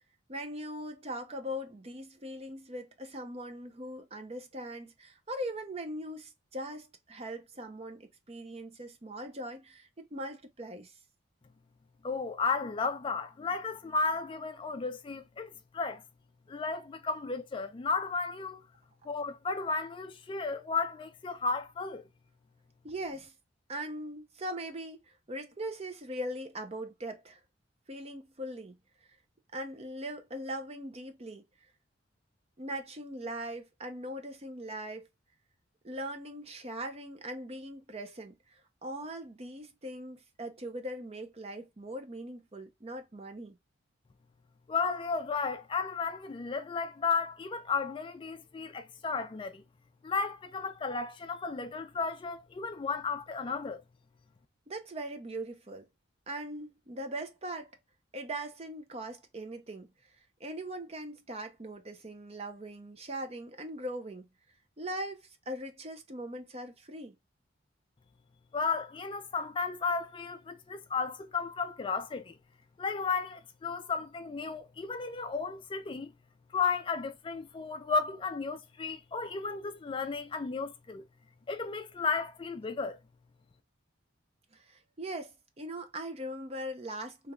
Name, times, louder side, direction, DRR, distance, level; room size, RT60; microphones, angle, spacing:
voice 1, 0.3-11.0 22.8-23.3 23.7-27.4 27.9-28.8 29.5-31.4 32.6-35.1 35.8-43.6 54.7-55.9 56.3-57.8 58.1-59.9 60.4-64.3 64.8-67.2 84.5-87.3, right 1 dB, 30° right, 0.6 m, -40 dB
voice 2, 12.0-16.0 16.5-18.6 19.1-22.0 44.7-49.6 50.0-53.8 68.5-72.4 72.8-76.1 76.5-81.0 81.5-83.0, left 4 dB, 25° left, 0.3 m, -34 dB
3.3 x 2.9 x 2.3 m
head